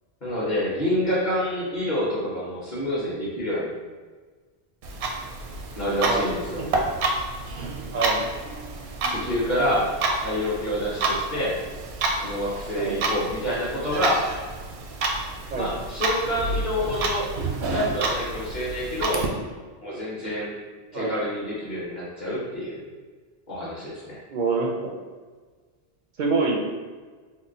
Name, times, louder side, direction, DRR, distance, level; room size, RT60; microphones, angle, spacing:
voice 1, 0.2-3.7 5.8-6.7 9.1-9.9 10.2-11.6 12.2-14.2 15.5-17.3 17.6-19.3 19.8-20.6 20.9-22.8 23.5-24.2, equal, 45° left, -7 dB, 1.0 m, -27 dB
Clock, 4.8-19.3, right 2 dB, 80° right, 0.8 m, -29 dB
voice 2, 24.3-24.9 26.2-26.6, right 4 dB, 60° right, 0 dB, 0.5 m, -25 dB
3.7 x 2.1 x 3.8 m, 1.4 s
omnidirectional pair, 1.1 m